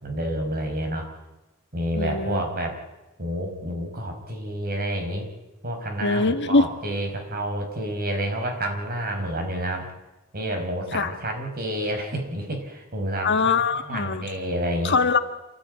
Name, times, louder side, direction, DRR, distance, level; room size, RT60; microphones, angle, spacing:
voice 1, 0.0-1.1 1.7-2.8 3.2-5.3 5.6-9.9 10.3-13.5 13.9-14.9, right 1 dB, 45° right, 4 dB, 5.1 m, -29 dB
voice 2, 1.9-2.4 6.0-6.7 10.9-11.1 13.2-14.2 14.8-15.2, left 4 dB, 55° left, 9 dB, 1.5 m, -22 dB
27.0 x 15.0 x 9.4 m, 1.0 s
head